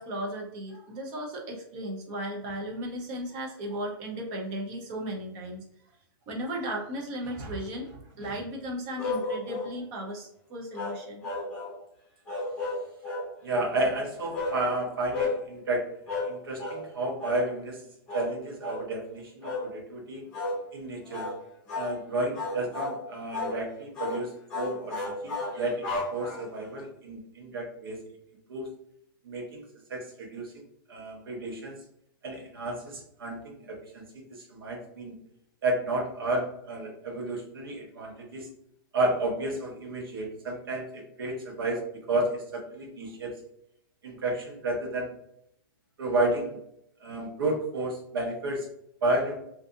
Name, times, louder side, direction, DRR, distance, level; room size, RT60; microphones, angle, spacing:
voice 1, 0.0-5.6 6.3-11.3, right 1 dB, 30° right, 0 dB, 0.5 m, -36 dB
sound 1, 9.0-9.7 10.7-11.8 12.3-13.3 14.3-14.6 15.1-15.4 16.1-16.3 16.6-16.8 17.2-17.4 18.1-18.3 18.6-18.9 19.4-19.7 20.3-20.6 21.1-21.4 21.7-21.9 22.3-23.0 23.3-23.6 23.9-24.2 24.5-26.6, left 2 dB, 5° left, 1.0 m, -32 dB
voice 2, 13.4-15.9 16.2-17.8 18.1-20.2 20.7-21.3 21.7-28.1 28.5-28.7 29.2-29.6 29.9-30.6 30.9-31.8 32.2-35.2 35.6-38.5 38.9-41.8 42.1-43.3 44.0-45.1 46.0-46.6 47.0-48.7 49.0-49.4, right 2 dB, 90° right, 1 dB, 0.9 m, -31 dB
2.5 x 2.4 x 2.5 m, 0.74 s
hypercardioid pair, 165°, 12 cm